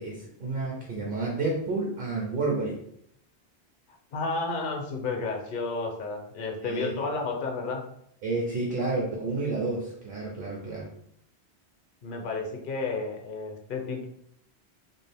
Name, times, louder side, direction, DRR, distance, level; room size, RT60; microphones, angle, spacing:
voice 1, 0.0-2.8 6.6-7.0 8.2-10.9, right 3 dB, 60° right, -2 dB, 0.7 m, -30 dB
voice 2, 4.1-7.8 12.0-14.1, left 3 dB, 55° left, 2 dB, 0.7 m, -31 dB
2.6 x 2.4 x 3.3 m, 0.72 s
omnidirectional pair, 1.1 m